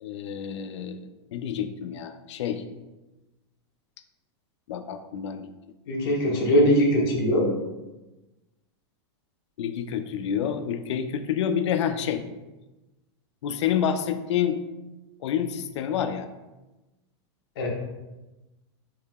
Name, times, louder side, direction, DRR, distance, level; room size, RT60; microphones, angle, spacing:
voice 1, 0.0-1.0 1.3-2.6 4.7-5.5 9.6-12.2 13.4-14.6 15.2-16.3, left 8 dB, 80° left, 9 dB, 0.4 m, -28 dB
voice 2, 5.9-7.5 17.6-17.7, equal, 55° left, -2 dB, 1.0 m, -21 dB
4.8 x 2.8 x 2.3 m, 1.1 s
supercardioid pair, 165°, 15 cm